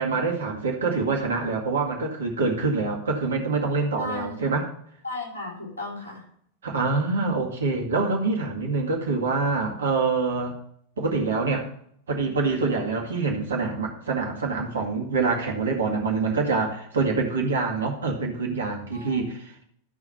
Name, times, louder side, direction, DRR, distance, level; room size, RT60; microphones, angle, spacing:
voice 1, 0.0-4.7 6.6-10.6 11.0-11.7 12.1-19.6, right 4 dB, 65° right, 1 dB, 2.0 m, -25 dB
voice 2, 4.0-4.5 5.0-6.2 18.9-19.2, left 2 dB, 75° left, -3 dB, 3.6 m, -35 dB
13.0 x 4.9 x 5.6 m, 0.68 s
figure-of-eight pair, 90°, 0 cm